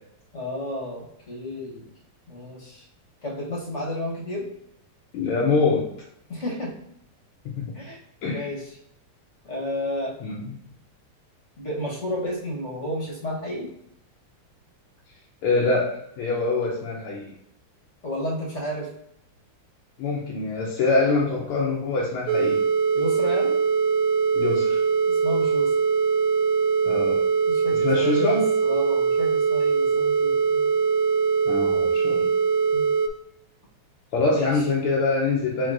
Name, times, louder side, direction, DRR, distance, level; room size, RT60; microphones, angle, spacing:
voice 1, 0.3-1.9 2.3-2.9 3.2-4.5 6.3-6.7 7.7-8.0 8.3-8.8 9.4-10.2 11.6-13.7 18.0-18.9 21.1-21.5 22.9-23.6 25.0-25.7 27.5-30.7 32.7-33.0 34.3-34.7, left 1 dB, 40° left, -3 dB, 1.2 m, -32 dB
voice 2, 5.1-5.9 7.4-7.7 8.2-8.5 10.2-10.4 15.4-17.3 20.0-22.6 24.3-24.8 26.8-27.2 27.7-28.5 31.5-32.3 34.1-35.7, left 3 dB, 80° left, -4 dB, 1.7 m, -24 dB
sound 1, 22.3-33.1, right 5 dB, 85° right, 0.9 m, -22 dB
4.6 x 4.6 x 2.5 m, 0.76 s
omnidirectional pair, 2.4 m